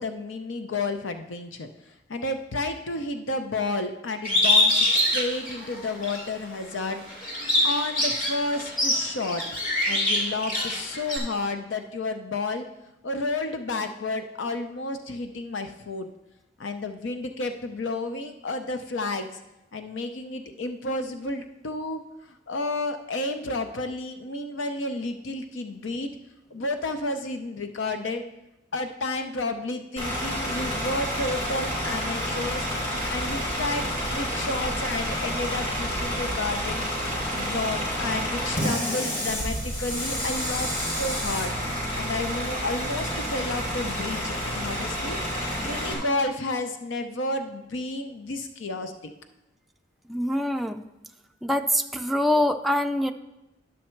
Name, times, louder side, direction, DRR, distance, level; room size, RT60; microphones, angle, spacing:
voice 1, 0.0-9.4 9.9-12.7 13.0-16.1 16.6-19.3 19.7-26.1 26.5-28.2 28.7-32.7 33.1-36.9 37.3-48.9, left 2 dB, 80° left, 7 dB, 0.6 m, -31 dB
Bird, 4.2-6.2 6.7-11.2, left 1 dB, 50° left, 2.3 m, -24 dB
Bus / Idling, 30.0-45.9, equal, 30° left, 3.3 m, -29 dB
voice 2, 50.1-50.8 51.4-53.1, left 1 dB, ahead, 5 dB, 0.3 m, -24 dB
10.5 x 6.4 x 4.5 m, 0.95 s
head